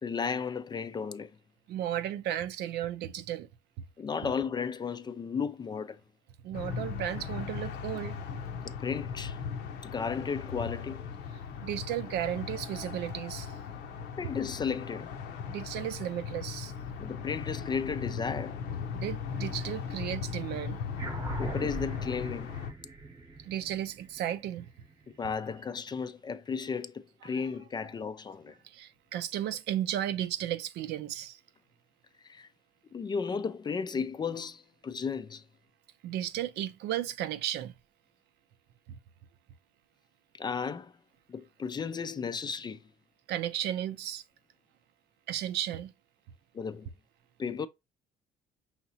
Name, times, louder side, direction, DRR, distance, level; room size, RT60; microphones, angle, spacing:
voice 1, 0.0-1.3 4.0-6.0 8.6-9.4 9.8-11.0 14.2-15.1 17.0-18.6 21.4-22.6 25.2-28.5 32.2-32.5 32.9-35.4 40.3-40.9 41.3-42.8 46.5-46.9 47.4-47.7, left 6 dB, 25° left, 0.4 m, -34 dB
voice 2, 1.7-3.5 6.4-8.2 11.6-13.5 15.5-16.7 18.9-21.1 23.4-24.7 28.6-31.4 36.0-37.7 43.3-44.2 45.3-45.9, right 11 dB, 80° right, 0.6 m, -34 dB
sound 1, 6.5-22.7, left 7 dB, 80° left, 0.7 m, -38 dB
sound 2, 21.0-25.7, right 3 dB, 20° right, 0.9 m, -42 dB
5.7 x 2.9 x 2.8 m
cardioid pair, 110°, 17 cm